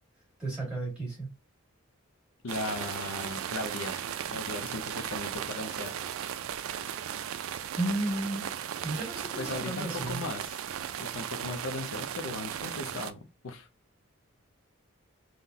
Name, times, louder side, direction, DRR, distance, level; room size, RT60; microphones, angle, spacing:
voice 1, 0.4-1.3 7.7-8.4 8.8-10.2, right 2 dB, 5° right, 1.9 m, -33 dB
voice 2, 2.4-5.9 9.4-10.6 11.0-13.7, left 2 dB, 80° left, 0.5 m, -38 dB
sound 1, 2.5-13.1, right 9 dB, 85° right, 0.3 m, -36 dB
3.7 x 2.1 x 2.6 m
head